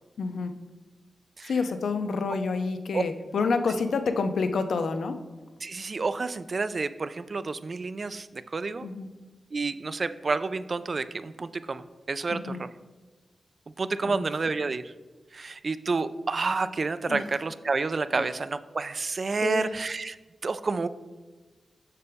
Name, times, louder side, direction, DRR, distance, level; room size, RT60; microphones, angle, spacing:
voice 1, 0.2-0.5 1.4-5.2 8.8-9.1 12.3-12.6 14.0-14.2 17.1-17.2 18.2-18.3 19.4-19.7, left 4 dB, 80° left, 8 dB, 0.6 m, -28 dB
voice 2, 5.6-8.9 9.5-12.7 13.8-14.8 15.3-20.2 20.4-20.9, right 3 dB, 45° right, 13 dB, 0.3 m, -29 dB
6.8 x 6.7 x 3.5 m, 1.3 s
wide cardioid pair, 110°, 0 cm